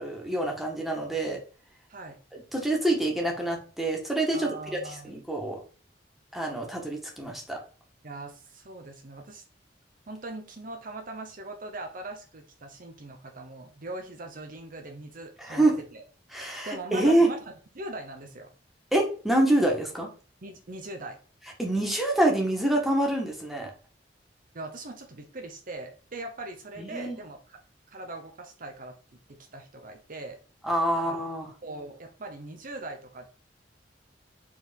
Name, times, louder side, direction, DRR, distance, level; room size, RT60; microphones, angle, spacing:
voice 1, 0.0-1.4 2.3-5.6 6.3-7.6 15.4-15.8 16.3-17.3 18.9-20.1 21.6-23.7 26.8-27.2 30.6-31.5, right 1 dB, ahead, -1 dB, 1.7 m, -26 dB
voice 2, 4.3-5.1 8.0-9.4 10.1-15.6 15.9-16.0 16.6-18.5 20.4-21.2 24.5-27.6 27.9-28.9 29.3-30.4 31.1-31.2 31.6-33.3, right 2 dB, 50° right, 4 dB, 0.9 m, -40 dB
4.7 x 4.1 x 5.3 m, 0.39 s
head